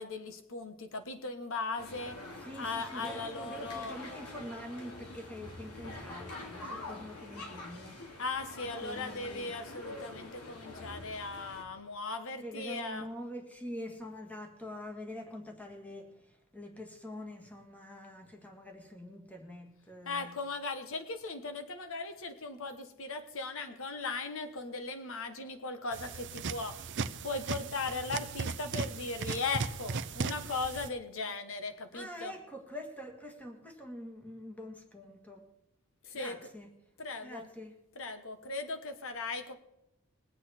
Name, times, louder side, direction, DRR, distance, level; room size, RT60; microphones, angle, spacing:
voice 1, 0.0-2.2 2.5-4.0 8.2-13.1 20.0-26.9 27.2-32.3 36.0-36.5 37.0-37.5 37.9-39.6, left 3 dB, 65° left, 8 dB, 1.2 m, -38 dB
sound 1, 1.8-11.6, left 2 dB, 90° left, 2.9 m, -46 dB
voice 2, 2.5-8.0 8.8-9.5 12.4-16.1 16.5-20.3 31.9-35.4 36.1-36.7 37.2-37.7, left 1 dB, 5° left, 2 dB, 1.8 m, -45 dB
sound 2, 25.9-30.9, right 4 dB, 55° right, 0.6 m, -37 dB
21.5 x 8.1 x 4.4 m, 0.86 s
head